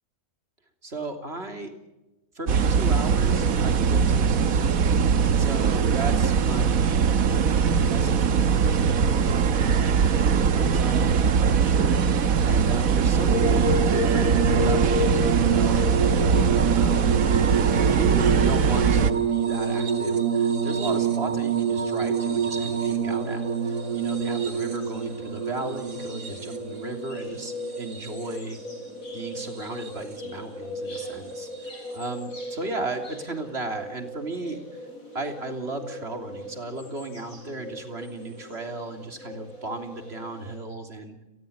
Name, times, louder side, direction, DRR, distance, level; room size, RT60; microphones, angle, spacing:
voice 1, 0.8-1.7 2.4-4.7 5.4-28.6 29.1-34.9 35.1-41.2, right 2 dB, 40° right, 5 dB, 3.5 m, -36 dB
sound 1, 2.5-19.1, right 6 dB, 60° right, 1.5 m, -21 dB
sound 2, 13.3-28.5 29.4-30.1 31.5-31.7, right 5 dB, 85° right, 3.1 m, -26 dB
sound 3, 23.1-40.6, equal, 60° left, 6.2 m, -40 dB
30.0 x 20.0 x 7.0 m, 1.0 s
omnidirectional pair, 1.7 m